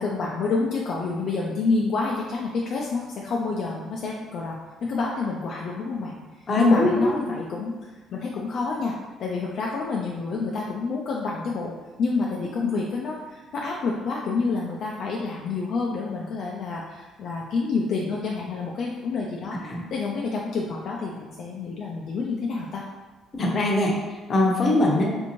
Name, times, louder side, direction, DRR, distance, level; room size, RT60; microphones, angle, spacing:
voice 1, 0.0-6.2 6.6-7.7 8.1-8.9 9.2-11.7 12.0-19.6 19.9-22.8 24.9-25.1, left 4 dB, 60° left, -2 dB, 0.4 m, -28 dB
voice 2, 6.5-7.2 12.6-12.7 19.7-19.8 23.3-23.9 24.3-25.1, left 1 dB, 35° left, -1 dB, 0.7 m, -21 dB
3.3 x 2.6 x 3.0 m, 1.3 s
cardioid pair, 115°, 0 cm